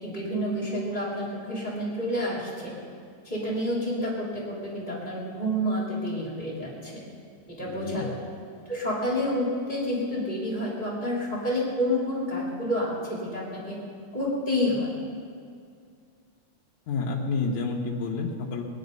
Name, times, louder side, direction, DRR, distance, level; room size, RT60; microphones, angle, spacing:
voice 1, 0.0-2.7 3.2-7.0 7.5-8.2 8.7-13.8 14.1-14.9, equal, 15° left, -6 dB, 3.1 m, -29 dB
voice 2, 7.6-8.1 16.9-18.6, left 4 dB, 70° left, -2 dB, 2.5 m, -29 dB
20.5 x 10.0 x 5.4 m, 2.3 s
omnidirectional pair, 3.6 m